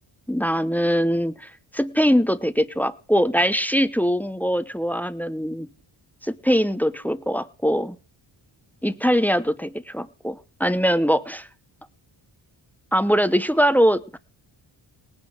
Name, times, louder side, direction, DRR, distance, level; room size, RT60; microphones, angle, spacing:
voice 1, 0.3-5.7 6.2-8.0 8.8-11.5 12.9-14.2, equal, 5° left, 14 dB, 0.9 m, -22 dB
19.0 x 9.7 x 4.8 m, 0.36 s
cardioid pair, 95°, 47 cm